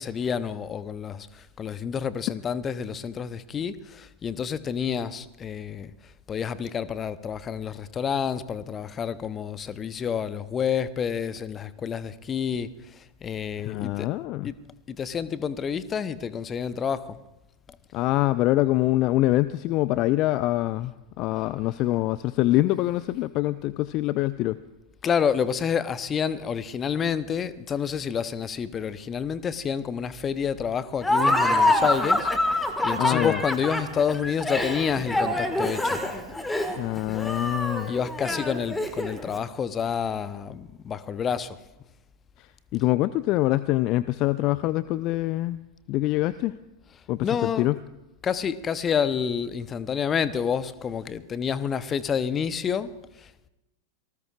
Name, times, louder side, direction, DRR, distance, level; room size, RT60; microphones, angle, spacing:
voice 1, 0.0-14.1 14.4-14.5 14.9-17.2 25.0-36.0 37.9-41.6 47.2-47.7 48.2-53.5, left 7 dB, 25° left, 0.8 m, -29 dB
voice 2, 13.6-14.5 17.9-24.6 33.0-33.4 36.8-37.9 42.4-45.6 45.9-46.5 47.1-47.8, left 16 dB, 40° left, 0.4 m, -25 dB
Laughter, 31.0-39.3, left 1 dB, 5° left, 1.7 m, -25 dB
27.0 x 19.0 x 2.4 m
figure-of-eight pair, 90°, 0 cm